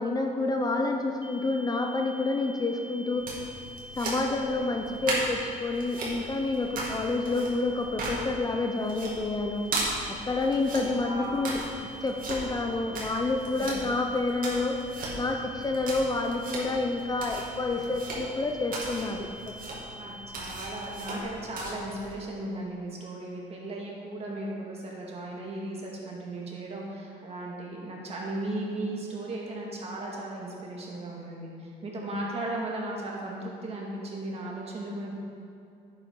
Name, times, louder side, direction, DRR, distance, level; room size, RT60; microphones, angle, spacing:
voice 1, 0.0-3.3 3.9-9.7 10.2-11.6 12.0-14.8 15.1-19.5, left 3 dB, 20° left, 3 dB, 0.7 m, -28 dB
sound 1, 1.2-21.2, equal, 10° right, 1.0 m, -46 dB
sound 2, 3.1-22.1, right 2 dB, 55° right, 2.4 m, -37 dB
voice 2, 11.0-11.5 13.6-13.7 20.0-35.1, right 1 dB, 35° right, -2 dB, 2.2 m, -36 dB
10.5 x 8.3 x 3.9 m, 2.6 s
cardioid pair, 110°, 17 cm